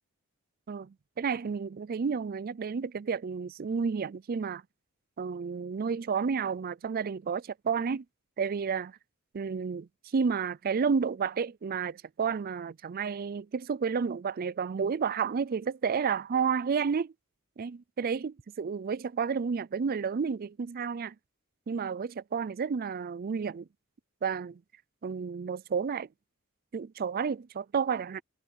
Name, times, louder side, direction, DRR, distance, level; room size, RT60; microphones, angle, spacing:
voice 1, 0.7-4.6 5.2-8.0 8.4-8.9 9.3-17.1 17.6-21.1 21.7-23.7 24.2-24.6 25.0-26.1 26.7-28.2, right 6 dB, 45° right, 0.4 m, -31 dB
head